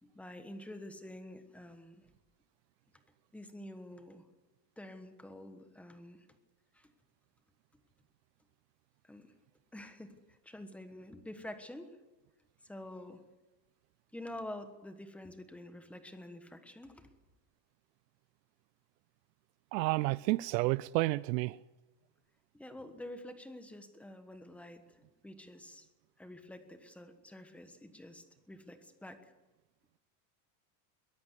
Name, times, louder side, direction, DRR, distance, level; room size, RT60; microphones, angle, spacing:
voice 1, 0.0-2.1 3.3-4.2 4.8-6.3 6.7-6.9 9.0-9.3 9.7-12.0 12.6-13.2 14.1-17.1 22.5-25.9 26.2-29.3, left 1 dB, 5° left, 1.3 m, -48 dB
voice 2, 19.7-21.6, right 21 dB, 90° right, 0.7 m, -30 dB
22.5 x 18.0 x 8.1 m
cardioid pair, 175°, 49 cm